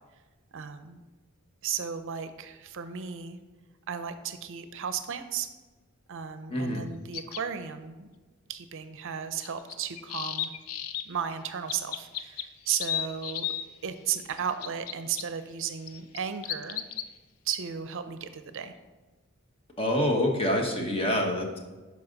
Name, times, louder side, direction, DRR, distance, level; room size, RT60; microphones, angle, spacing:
voice 1, 0.5-1.0 1.6-3.4 3.9-5.5 6.1-8.1 8.5-10.5 11.1-13.5 13.8-16.8 17.5-18.7, right 7 dB, 65° right, 10 dB, 0.6 m, -34 dB
voice 2, 6.5-6.8 19.8-21.6, left 1 dB, 25° left, 2 dB, 1.2 m, -26 dB
sound 1, 7.1-7.4 9.4-11.0 11.7-13.6 14.3-15.2 15.9-17.1, left 11 dB, 80° left, 0.5 m, -33 dB
11.5 x 4.9 x 3.9 m, 1.2 s
head